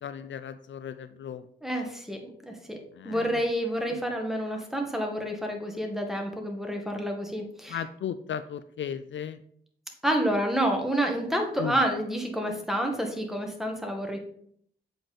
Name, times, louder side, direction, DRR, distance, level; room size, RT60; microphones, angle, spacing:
voice 1, 0.0-1.4 2.9-3.4 7.7-9.4 11.6-11.8, left 8 dB, 65° left, 12 dB, 0.4 m, -35 dB
voice 2, 1.6-2.8 3.0-7.8 10.0-14.2, equal, ahead, 3 dB, 1.9 m, -29 dB
7.9 x 4.8 x 4.2 m, 0.64 s
cardioid pair, 70°, 21 cm